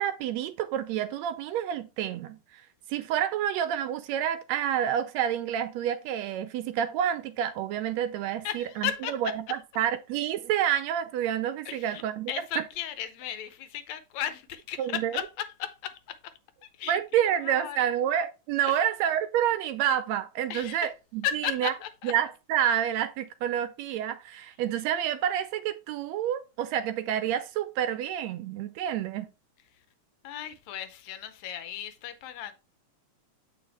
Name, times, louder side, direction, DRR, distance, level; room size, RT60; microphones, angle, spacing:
voice 1, 0.0-2.6 2.9-12.6 14.8-15.1 16.9-21.7 22.0-29.3, right 10 dB, 75° right, 1.7 m, -29 dB
voice 2, 8.4-9.2 11.7-12.0 12.3-16.3 16.6-17.9 18.6-18.8 20.5-20.9 21.2-22.1 29.7-29.8 30.2-32.5, left 10 dB, 75° left, 2.0 m, -35 dB
7.6 x 5.3 x 3.3 m
omnidirectional pair, 3.3 m